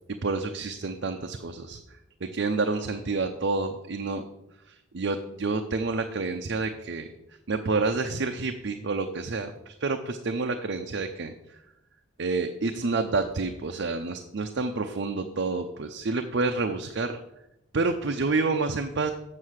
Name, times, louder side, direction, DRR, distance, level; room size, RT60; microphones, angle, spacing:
voice 1, 0.2-1.8 2.2-4.2 4.9-7.1 7.5-11.3 12.2-17.2 17.7-19.1, right 3 dB, 60° right, 5 dB, 0.6 m, -28 dB
7.6 x 6.5 x 6.3 m, 0.91 s
head